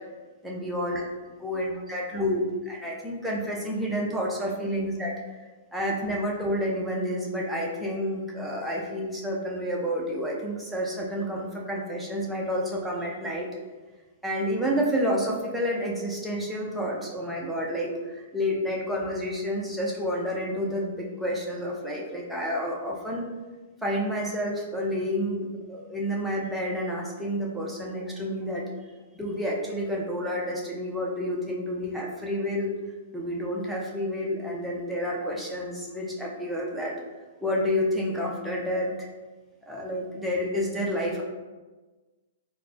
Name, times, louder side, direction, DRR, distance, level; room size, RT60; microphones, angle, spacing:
voice 1, 0.4-1.0 1.4-5.4 5.7-13.5 14.2-23.3 23.8-28.6 29.1-32.8 33.1-36.9 37.4-39.1 39.7-41.2, equal, 5° right, -4 dB, 0.7 m, -29 dB
4.0 x 2.1 x 2.8 m, 1.2 s
hypercardioid pair, 115°, 0 cm